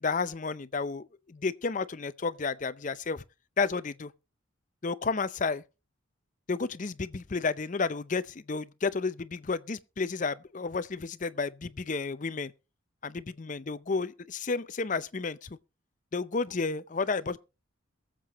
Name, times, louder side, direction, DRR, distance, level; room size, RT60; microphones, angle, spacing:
voice 1, 0.0-3.2 3.6-4.1 4.8-5.6 6.5-12.5 13.0-15.6 16.1-17.4, left 4 dB, 35° left, 0.5 m, -31 dB
22.5 x 7.6 x 3.0 m
head